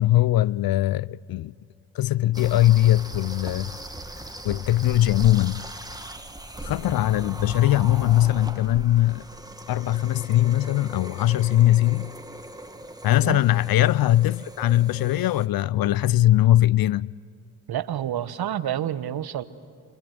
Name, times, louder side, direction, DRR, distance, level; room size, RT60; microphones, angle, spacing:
voice 1, 0.0-1.5 1.9-3.7 4.4-5.7 6.6-9.3 9.7-12.1 13.0-17.1, left 14 dB, 55° left, 0.6 m, -21 dB
sound 1, 2.3-15.5, right 1 dB, 10° right, 2.2 m, -39 dB
voice 2, 17.7-19.4, right 11 dB, 55° right, 1.3 m, -28 dB
29.5 x 25.5 x 7.9 m
hypercardioid pair, 45°, 44 cm